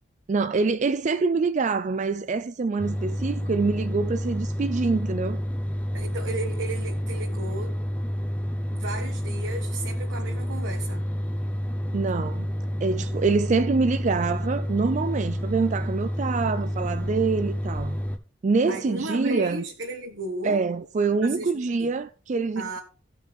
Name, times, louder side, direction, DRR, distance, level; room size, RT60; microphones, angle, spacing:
voice 1, 0.3-5.4 11.9-12.5 12.8-18.0 18.4-19.6 20.4-22.8, right 4 dB, 35° right, 0.4 m, -25 dB
sound 1, 2.8-18.2, equal, 10° left, 0.8 m, -29 dB
voice 2, 5.9-7.7 8.7-11.1 18.7-20.6 21.2-21.5 21.8-21.9 22.5-22.8, right 2 dB, 65° right, 1.5 m, -34 dB
17.0 x 6.0 x 3.5 m
head